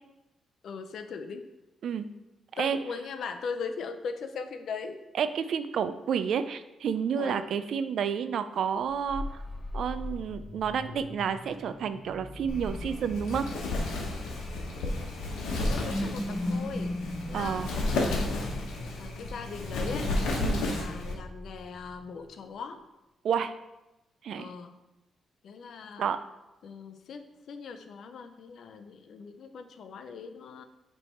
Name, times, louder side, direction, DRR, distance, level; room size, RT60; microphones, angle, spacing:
voice 1, 0.6-1.5 2.6-5.0 7.2-7.5 15.3-17.0 17.3-20.1 20.6-22.8 24.4-24.7 25.4-26.1 26.6-30.7, left 5 dB, 70° left, 8 dB, 0.6 m, -40 dB
voice 2, 5.2-9.4 9.7-13.4 17.3-17.7 20.4-20.6 23.2-23.5 24.2-24.5 26.0-26.2, right 7 dB, 70° right, 11 dB, 0.4 m, -30 dB
sound 1, 9.0-22.3, left 1 dB, 20° left, 0.8 m, -39 dB
Wind, 12.5-21.1, left 2 dB, 90° left, 1.0 m, -32 dB
7.0 x 3.4 x 4.5 m, 0.98 s
cardioid pair, 75°, 0 cm